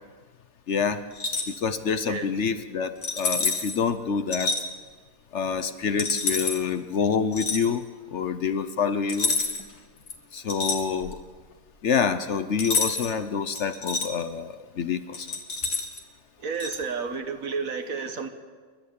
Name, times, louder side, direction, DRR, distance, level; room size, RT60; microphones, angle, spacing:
voice 1, 0.7-1.0 1.5-4.6 5.3-7.8 8.1-9.3 10.3-11.2 11.8-15.3, left 6 dB, 55° left, 11 dB, 1.0 m, -27 dB
sound 1, 1.1-1.6 3.0-3.8 4.3-4.6 6.0-6.6 7.3-7.7 9.1-9.7 10.1-11.3 12.6-13.1 13.5-14.1 15.1-16.0 16.6-16.8, left 3 dB, 75° left, 2.3 m, -28 dB
voice 2, 16.4-18.3, right 5 dB, 65° right, 7 dB, 1.9 m, -31 dB
29.5 x 12.0 x 8.4 m, 1.5 s
omnidirectional pair, 1.6 m